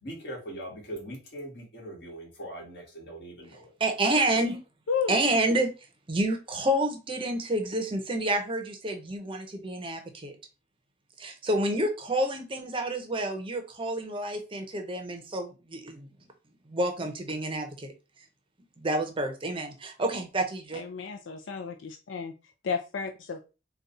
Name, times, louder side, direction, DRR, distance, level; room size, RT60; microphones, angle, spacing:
voice 1, 0.0-3.7, right 1 dB, 60° left, -1 dB, 1.8 m, -41 dB
voice 2, 3.8-4.6 5.1-5.7 6.1-10.4 11.2-16.1 16.7-17.9 18.8-20.8, right 1 dB, 30° right, 6 dB, 0.6 m, -29 dB
voice 3, 4.9-5.4 20.8-22.3 22.7-23.4, left 6 dB, 80° left, 4 dB, 0.4 m, -32 dB
3.9 x 2.3 x 4.0 m, 0.31 s
head